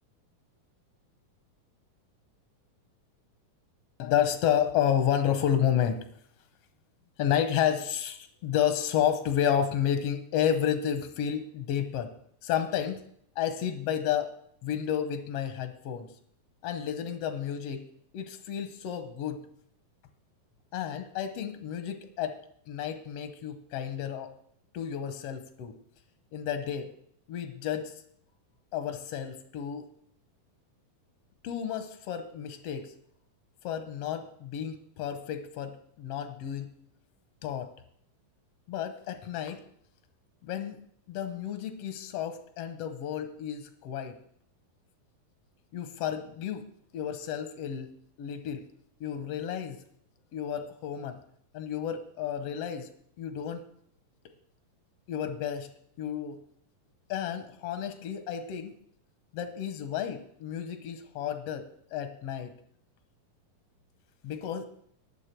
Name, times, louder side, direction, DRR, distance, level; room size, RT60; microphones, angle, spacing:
voice 1, 4.0-6.0 7.2-12.1 12.4-13.0 13.4-14.3 14.6-16.1 16.6-17.9 18.1-19.4 20.7-22.4 22.7-24.3 24.7-25.7 26.3-26.9 27.3-27.9 28.7-29.9 31.4-32.9 33.6-36.7 37.4-37.7 38.7-39.6 40.4-40.8 41.1-44.2 45.7-48.6 49.0-49.8 50.3-51.2 51.5-52.9 53.2-53.6 55.1-55.7 56.0-56.4 57.1-58.7 59.3-61.6 61.9-62.5 64.2-64.6, left 9 dB, 80° left, 8 dB, 1.4 m, -31 dB
20.0 x 7.1 x 4.5 m, 0.68 s
omnidirectional pair, 4.0 m